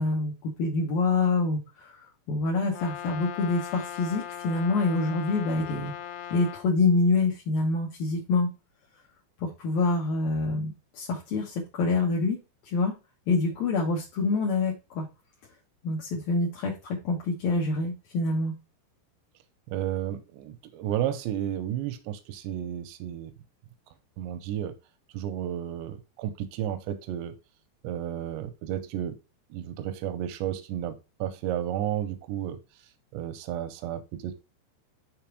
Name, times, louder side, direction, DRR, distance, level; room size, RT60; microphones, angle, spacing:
voice 1, 0.0-5.9 6.3-8.5 9.4-12.4 12.6-12.9 13.3-15.1 15.8-18.5, left 3 dB, 70° left, -2 dB, 2.4 m, -26 dB
Brass instrument, 2.7-6.7, left 10 dB, 85° left, 2.9 m, -39 dB
voice 2, 19.7-23.3 24.2-24.7 25.1-27.3 27.8-29.2 29.5-32.6 33.1-34.3, right 11 dB, 85° right, 9 dB, 2.9 m, -32 dB
6.8 x 3.7 x 4.6 m, 0.28 s
omnidirectional pair, 5.1 m